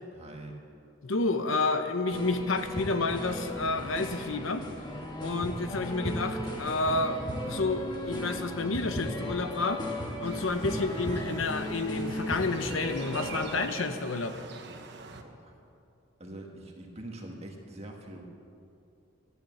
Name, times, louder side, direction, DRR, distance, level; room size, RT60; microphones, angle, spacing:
voice 1, 0.1-0.6 5.3-5.4 15.2-15.5 16.2-18.2, right 1 dB, 30° right, 1 dB, 1.7 m, -44 dB
voice 2, 1.0-4.7 5.2-9.8 10.2-14.4, left 3 dB, 80° left, 8 dB, 0.9 m, -30 dB
sound 1, 2.1-13.7, equal, 25° left, 1.3 m, -36 dB
sound 2, 10.2-15.2, right 4 dB, 60° right, 1.0 m, -45 dB
12.0 x 11.0 x 7.1 m, 2.6 s
head